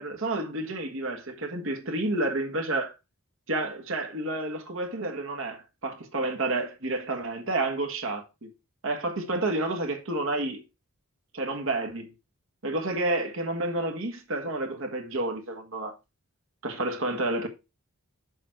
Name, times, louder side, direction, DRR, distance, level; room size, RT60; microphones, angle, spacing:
voice 1, 0.0-2.9 3.5-8.5 8.8-10.6 11.3-12.1 12.6-15.9 16.6-17.5, right 2 dB, 60° right, 1.5 m, -30 dB
7.1 x 5.0 x 4.5 m
head